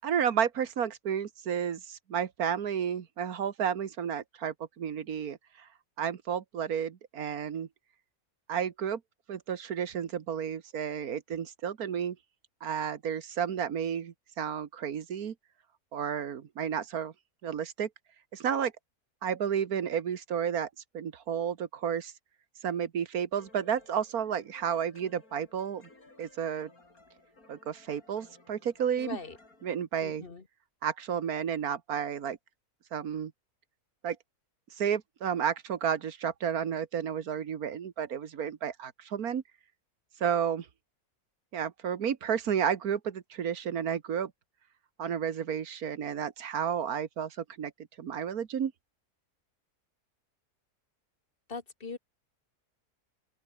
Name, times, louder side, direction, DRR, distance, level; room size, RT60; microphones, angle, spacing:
voice 1, 0.0-5.7 6.0-7.7 8.5-9.0 9.3-12.2 12.6-15.3 15.9-17.1 17.4-17.9 18.3-18.7 19.2-20.7 20.9-22.1 22.6-25.9 26.2-26.7 27.5-29.2 29.6-30.2 30.8-32.4 32.9-33.3 34.0-34.2 34.8-39.4 40.2-40.7 41.5-44.3 45.0-47.7 48.0-48.7, right 8 dB, 70° right, 1.8 m, -32 dB
sound 1, 23.3-29.8, left 2 dB, 70° left, 5.6 m, -58 dB
voice 2, 29.0-29.4 30.0-30.4 51.5-52.0, left 4 dB, 35° left, 1.7 m, -40 dB
omnidirectional pair, 1.6 m